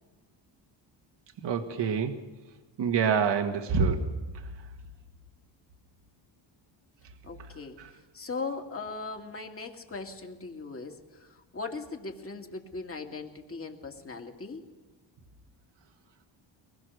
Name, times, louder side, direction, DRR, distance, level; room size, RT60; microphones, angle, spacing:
voice 1, 1.4-2.1 2.8-4.1, right 6 dB, 60° right, 4 dB, 1.6 m, -26 dB
voice 2, 7.2-14.6, left 4 dB, 30° left, 3 dB, 2.4 m, -39 dB
23.5 x 20.5 x 6.5 m, 1.2 s
cardioid pair, 125°, 47 cm